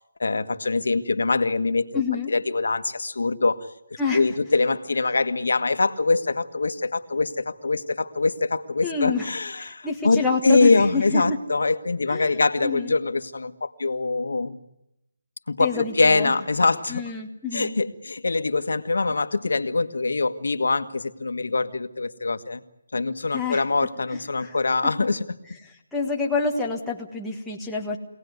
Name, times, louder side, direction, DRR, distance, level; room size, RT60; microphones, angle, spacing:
voice 1, 0.2-2.0 2.3-3.7 4.1-14.6 15.5-17.0 17.5-22.6 22.9-25.3, left 3 dB, 80° left, 10 dB, 1.5 m, -23 dB
voice 2, 1.9-2.3 4.0-4.2 8.8-9.3 9.6-11.2 12.1-12.3 12.6-12.9 15.6-16.3 16.9-17.7 23.3-23.6 24.4-24.5 25.9-28.0, left 4 dB, 5° left, -4 dB, 1.4 m, -27 dB
25.0 x 18.0 x 9.5 m, 0.87 s
hypercardioid pair, 170°, 0 cm